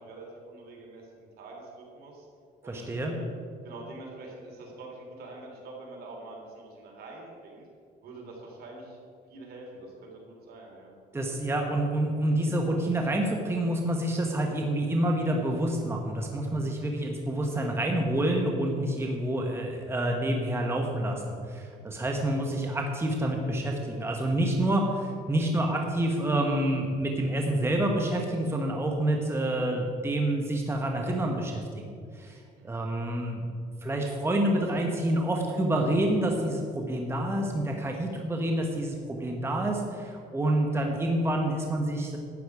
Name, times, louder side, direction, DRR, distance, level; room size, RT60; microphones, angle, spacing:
voice 1, 0.0-2.3 2.6-3.3 3.6-7.6 8.0-9.0 9.3-10.9 32.6-32.8, right 2 dB, 65° right, -1 dB, 3.4 m, -45 dB
voice 2, 2.7-3.1 11.1-33.5 33.8-42.2, right 1 dB, 15° right, 1 dB, 1.2 m, -28 dB
12.0 x 9.0 x 4.8 m, 2.2 s
cardioid pair, 110°, 17 cm